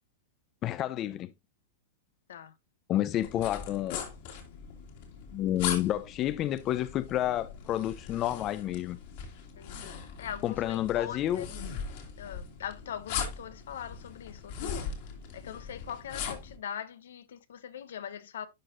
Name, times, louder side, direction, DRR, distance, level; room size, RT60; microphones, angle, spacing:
voice 1, 0.6-1.3 2.9-4.0 5.3-9.0 10.4-11.5, left 13 dB, 35° left, 0.5 m, -30 dB
sound 1, 3.2-16.6, left 7 dB, 60° left, 2.2 m, -40 dB
voice 2, 10.2-11.6 12.2-14.8 15.3-18.5, left 9 dB, 80° left, 0.7 m, -41 dB
11.5 x 4.2 x 2.5 m
hypercardioid pair, 130°, 0 cm